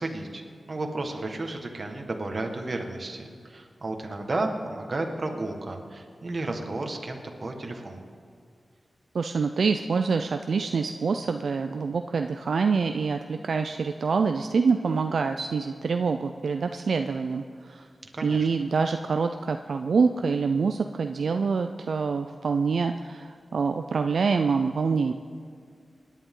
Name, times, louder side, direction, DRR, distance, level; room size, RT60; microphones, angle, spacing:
voice 1, 0.0-8.0 18.1-18.5, right 2 dB, 45° right, 3 dB, 1.6 m, -33 dB
voice 2, 9.1-17.9 18.2-25.1, right 5 dB, 75° right, 6 dB, 0.4 m, -26 dB
25.5 x 10.5 x 3.8 m, 2.2 s
wide cardioid pair, 95°, 0 cm